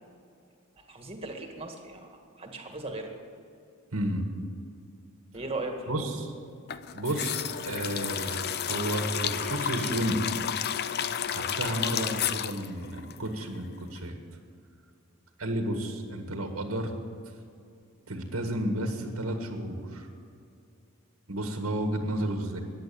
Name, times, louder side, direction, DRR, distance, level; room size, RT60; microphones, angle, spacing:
voice 1, 0.8-3.1 5.3-6.2, right 2 dB, 30° right, 3 dB, 1.9 m, -38 dB
voice 2, 3.9-4.2 5.9-6.3 6.9-10.2 11.3-14.2 15.4-17.0 18.1-20.1 21.3-22.6, right 1 dB, 90° right, 4 dB, 1.8 m, -32 dB
sound 1, 6.7-13.7 14.0-14.1, left 9 dB, 50° left, 0.6 m, -32 dB
14.5 x 10.5 x 8.8 m, 2.4 s
head